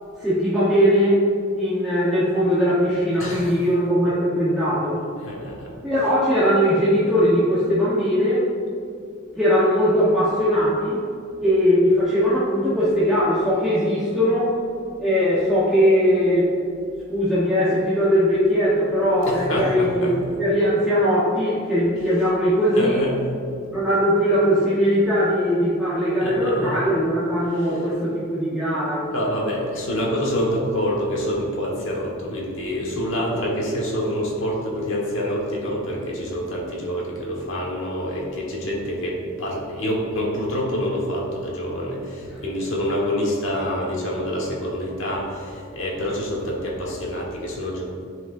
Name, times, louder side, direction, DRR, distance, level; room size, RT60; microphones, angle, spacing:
voice 1, 0.2-1.2 1.6-5.0 5.8-8.5 9.3-11.0 11.4-14.6 15.0-16.5 17.1-23.0 23.7-29.1, equal, ahead, -11 dB, 1.0 m, -20 dB
voice 2, 3.2-3.6 5.2-5.8 19.2-20.4 22.7-23.2 26.2-26.8 27.5-27.9 29.1-47.8, equal, 70° left, -3 dB, 1.4 m, -27 dB
9.7 x 4.9 x 2.5 m, 2.4 s
head